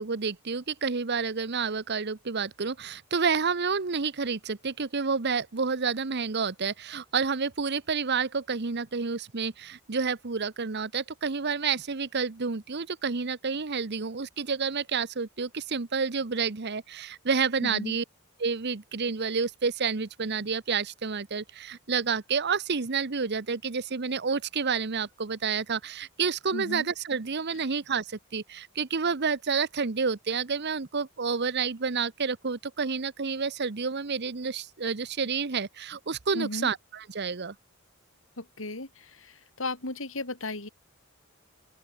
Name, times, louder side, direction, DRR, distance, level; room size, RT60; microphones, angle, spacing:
voice 1, 0.0-18.0 18.4-37.5, right 5 dB, 55° right, 0.9 m, -29 dB
voice 2, 17.6-18.0 26.5-26.9 36.3-36.7 38.4-40.7, left 2 dB, 65° left, 4.0 m, -35 dB
open air
head